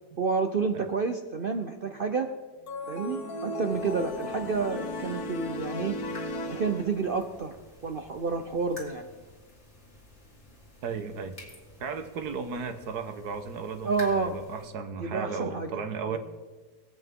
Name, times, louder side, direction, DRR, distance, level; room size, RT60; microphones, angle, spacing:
voice 1, 0.2-2.3 2.9-6.0 6.5-7.6 7.8-9.1 13.8-14.4 15.0-16.2, right 4 dB, 50° right, 5 dB, 0.7 m, -29 dB
sound 1, 2.7-7.3, left 1 dB, 70° left, 1.5 m, -35 dB
sound 2, 3.7-14.7, left 1 dB, 45° left, 2.5 m, -51 dB
voice 2, 10.8-11.4 11.8-16.2, right 5 dB, 80° right, 8 dB, 1.5 m, -35 dB
23.5 x 8.1 x 3.7 m, 1.4 s
omnidirectional pair, 1.7 m